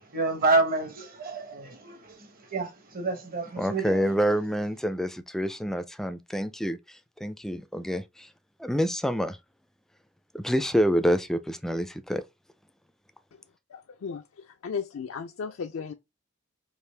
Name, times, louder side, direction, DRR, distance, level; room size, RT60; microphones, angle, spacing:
voice 1, 0.1-4.1, right 3 dB, 45° right, 0.9 m, -28 dB
voice 2, 3.6-6.8 7.2-8.3 8.6-9.4 10.3-12.2, equal, ahead, 0.3 m, -27 dB
voice 3, 13.7-15.9, left 6 dB, 70° left, 0.4 m, -35 dB
4.9 x 2.5 x 3.3 m
head